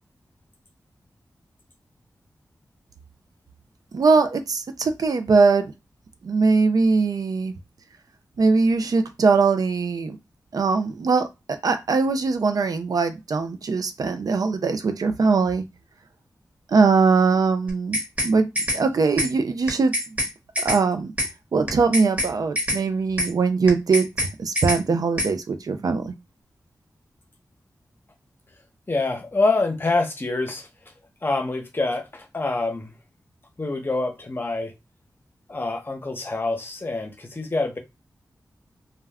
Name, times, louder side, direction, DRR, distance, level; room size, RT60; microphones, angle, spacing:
voice 1, 3.9-5.7 6.2-7.5 8.4-10.2 10.5-11.3 11.6-15.6 16.7-18.0 18.2-18.5 18.7-20.2 20.6-21.1 21.5-26.1, right 4 dB, 65° right, 0.4 m, -21 dB
sound 1, 17.7-18.3 18.6-18.8 19.2-19.3 19.7-20.3 20.6-20.8 21.2-21.3 21.7-22.3 22.6-22.8 23.2-23.3 23.7-24.3 24.6-24.8 25.2-25.3, equal, 20° right, 1.1 m, -25 dB
voice 2, 28.9-30.7 31.2-32.9 33.6-34.7 35.5-37.8, left 3 dB, 30° left, 0.8 m, -26 dB
2.2 x 2.2 x 3.4 m
cardioid pair, 65°, 7 cm